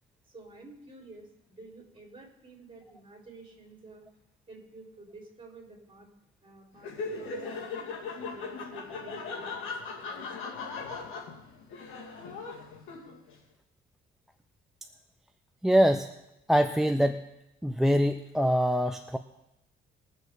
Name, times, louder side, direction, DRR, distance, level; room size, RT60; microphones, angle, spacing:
voice 1, 0.2-4.1 4.5-6.1 6.4-7.6 8.1-10.6, right 2 dB, 25° right, -2 dB, 4.8 m, -51 dB
Laughter, 6.8-13.3, left 4 dB, 90° left, 2.4 m, -39 dB
voice 2, 15.6-16.1 16.5-17.2 17.6-19.2, equal, ahead, 8 dB, 0.6 m, -24 dB
21.5 x 7.3 x 4.0 m, 0.89 s
cardioid pair, 90°, 20 cm